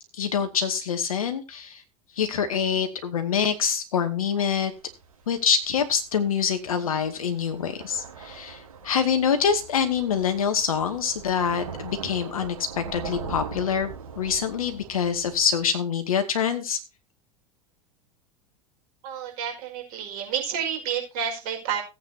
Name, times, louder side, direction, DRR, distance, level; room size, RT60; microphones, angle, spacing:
voice 1, 0.2-1.8 2.2-4.7 5.3-16.8, left 7 dB, 70° left, 7 dB, 2.2 m, -25 dB
Thunder / Rain, 4.7-15.6, right 6 dB, 75° right, 4.3 m, -41 dB
voice 2, 19.0-21.8, right 8 dB, 50° right, 2 dB, 5.4 m, -30 dB
17.5 x 8.8 x 2.8 m, 0.26 s
figure-of-eight pair, 80°, 18 cm